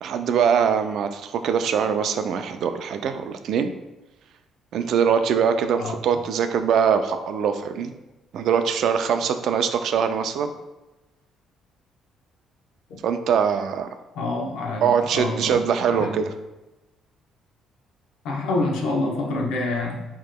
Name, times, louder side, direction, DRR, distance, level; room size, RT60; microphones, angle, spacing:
voice 1, 0.0-3.7 4.7-7.9 8.3-10.5 13.0-13.9 14.8-16.3, right 7 dB, 65° right, 8 dB, 0.3 m, -22 dB
voice 2, 14.2-15.6 15.9-16.1 18.2-20.0, left 2 dB, 80° left, 0 dB, 0.7 m, -27 dB
4.6 x 2.9 x 2.2 m, 1.1 s
cardioid pair, 120°, 0 cm